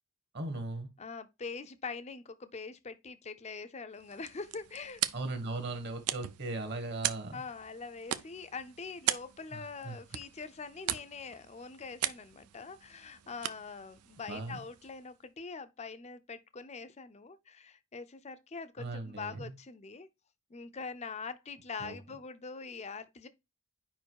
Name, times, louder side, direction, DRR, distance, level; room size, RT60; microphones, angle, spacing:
voice 1, 0.3-0.9 5.1-7.4 9.5-10.0 14.3-14.6 18.8-19.5 21.8-22.0, right 2 dB, 50° right, 1.4 m, -38 dB
voice 2, 1.0-5.0 7.3-20.1 20.5-23.3, left 4 dB, 30° left, 0.5 m, -43 dB
sound 1, 3.9-15.2, right 12 dB, 90° right, 0.5 m, -40 dB
5.0 x 4.6 x 4.6 m
head